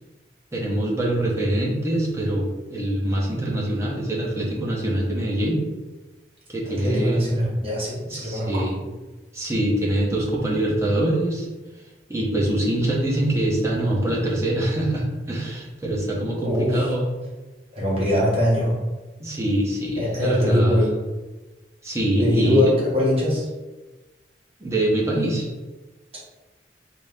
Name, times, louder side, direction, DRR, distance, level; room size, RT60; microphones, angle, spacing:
voice 1, 0.5-5.6 6.5-7.3 8.0-8.8 9.3-11.5 12.1-17.0 19.2-20.8 21.8-22.7 24.6-25.5, right 1 dB, 15° right, -4 dB, 0.8 m, -24 dB
voice 2, 6.7-8.6 16.4-16.8 17.7-18.8 20.0-20.9 22.2-23.5, equal, 35° right, -6 dB, 1.1 m, -22 dB
4.1 x 2.1 x 3.5 m, 1.2 s
head